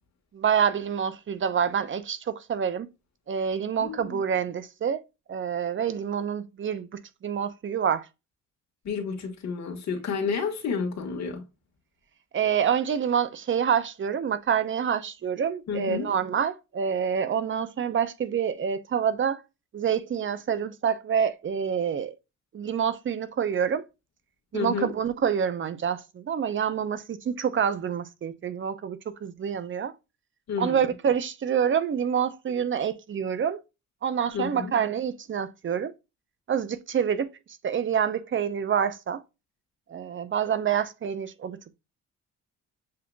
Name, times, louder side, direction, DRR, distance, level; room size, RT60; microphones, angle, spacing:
voice 1, 0.3-2.9 3.3-5.0 5.3-8.1 12.3-19.4 19.7-22.1 22.5-23.8 24.5-29.9 30.6-33.6 34.0-35.9 36.5-37.3 37.6-39.2 39.9-41.6, right 8 dB, 40° right, 0.7 m, -27 dB
voice 2, 3.8-4.2 8.8-11.4 15.7-16.1 24.5-24.9 30.5-30.9 34.3-34.7, left 5 dB, 65° left, 1.6 m, -30 dB
7.5 x 2.9 x 2.3 m
cardioid pair, 90°, 30 cm